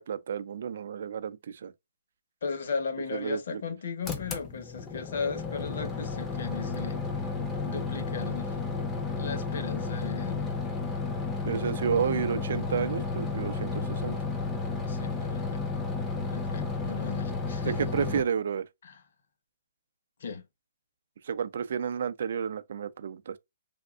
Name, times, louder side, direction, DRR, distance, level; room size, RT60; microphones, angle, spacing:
voice 1, 0.0-1.7 3.2-3.6 11.5-14.2 17.6-18.6 21.2-23.4, right 7 dB, 60° right, 0.3 m, -31 dB
voice 2, 2.4-7.0 7.7-8.6 9.1-10.5 14.9-15.6 16.3-17.8 18.8-19.0 20.2-20.5, left 5 dB, 60° left, 0.9 m, -36 dB
sound 1, 4.0-18.2, left 4 dB, 15° left, 0.5 m, -32 dB
3.4 x 2.3 x 2.3 m
hypercardioid pair, 155°, 0 cm